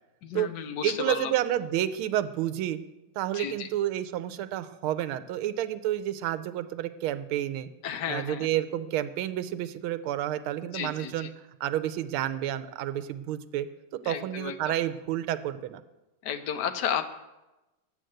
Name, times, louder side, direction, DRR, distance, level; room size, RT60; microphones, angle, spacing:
voice 1, 0.2-1.3 3.3-3.7 7.8-8.5 10.6-11.3 14.0-14.7 16.2-17.1, left 8 dB, 70° left, 9 dB, 1.1 m, -33 dB
voice 2, 0.8-2.8 3.2-7.7 8.1-11.3 11.6-13.7 13.9-15.8, right 12 dB, 85° right, 11 dB, 1.5 m, -30 dB
8.4 x 6.5 x 7.8 m, 1.0 s
omnidirectional pair, 2.3 m